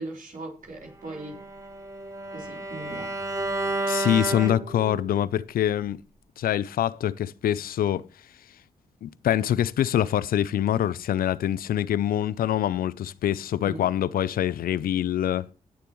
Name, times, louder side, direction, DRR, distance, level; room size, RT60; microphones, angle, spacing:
voice 1, 0.0-1.4 2.3-3.1 13.6-13.9, right 2 dB, 65° right, 4.0 m, -39 dB
Bowed string instrument, 1.0-5.2, right 2 dB, 20° right, 2.3 m, -31 dB
voice 2, 3.9-6.0 6.4-8.1 9.0-15.4, left 11 dB, 85° left, 0.4 m, -25 dB
17.5 x 6.9 x 3.1 m
cardioid pair, 45°, 15 cm